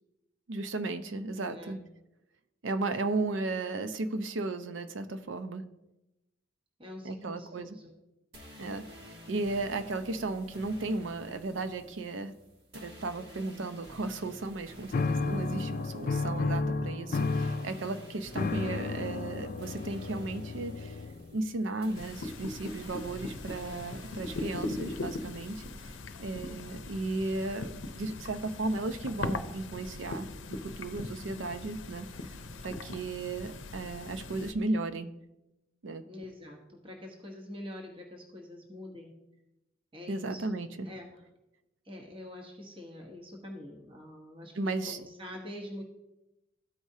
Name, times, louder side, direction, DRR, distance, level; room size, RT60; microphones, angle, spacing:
voice 1, 0.5-1.8 2.6-5.6 7.0-7.8 8.6-12.3 12.7-21.0 21.3-25.9 26.2-32.1 32.6-35.1 35.8-36.0 40.1-40.9 44.6-45.0, right 2 dB, 90° right, 10 dB, 0.6 m, -35 dB
voice 2, 1.4-1.8 6.8-7.9 26.5-26.6 36.1-39.1 39.9-40.4 40.8-41.2 41.8-45.8, left 1 dB, 25° right, 0 dB, 1.0 m, -45 dB
sound 1, 8.3-25.9, equal, 55° right, 1.6 m, -51 dB
sound 2, 14.9-21.4, left 3 dB, 45° left, 0.3 m, -32 dB
sound 3, 21.9-34.5, left 2 dB, 85° left, 0.6 m, -40 dB
13.5 x 4.8 x 2.7 m, 0.94 s
head